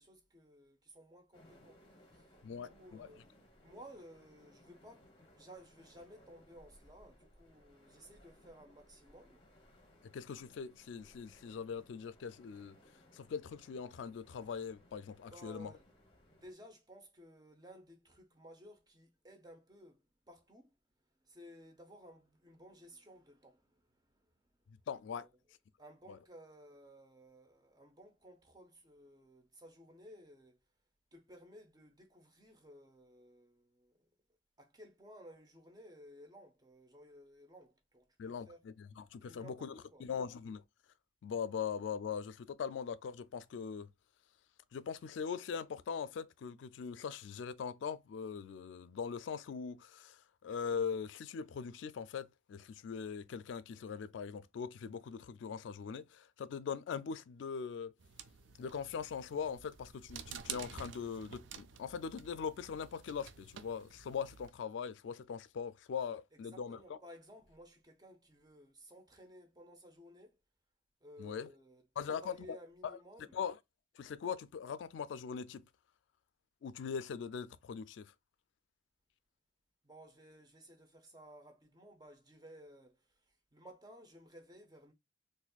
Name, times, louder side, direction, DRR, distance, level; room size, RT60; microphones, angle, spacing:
voice 1, 0.0-3.3 3.6-9.4 15.3-15.8 16.3-20.8 21.2-24.3 25.1-25.3 25.8-30.6 31.1-34.1 34.6-38.6 39.2-40.1 66.5-70.4 71.0-73.4 79.8-84.9, equal, 20° right, 0.7 m, -57 dB
sound 1, 1.3-16.5, left 1 dB, 25° left, 0.9 m, -64 dB
voice 2, 2.4-3.1 10.1-12.8 13.1-15.7 24.9-25.3 26.1-26.2 38.2-38.5 38.8-39.7 40.0-40.6 41.2-43.9 44.7-57.9 58.6-67.0 71.2-71.5 72.0-72.6 72.8-73.0 73.3-73.6 74.0-75.6 76.6-78.1, left 6 dB, 75° left, 0.3 m, -41 dB
sound 2, 58.0-64.5, right 7 dB, 75° right, 0.4 m, -50 dB
4.0 x 2.6 x 2.3 m
head